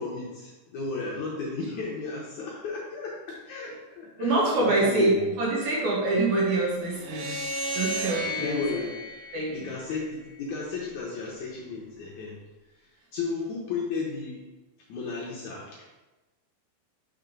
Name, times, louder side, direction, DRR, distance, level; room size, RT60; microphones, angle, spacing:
voice 1, 0.0-5.3 6.1-6.2 8.4-8.9 9.5-12.4 12.9-14.5 14.9-15.8, left 4 dB, 70° left, -3 dB, 1.9 m, -34 dB
voice 2, 4.2-7.3 7.7-8.5 9.3-9.5, right 2 dB, 65° right, -4 dB, 2.2 m, -25 dB
sound 1, 7.0-10.3, equal, 85° right, 2.6 m, -34 dB
5.8 x 3.4 x 5.1 m, 1.1 s
omnidirectional pair, 4.1 m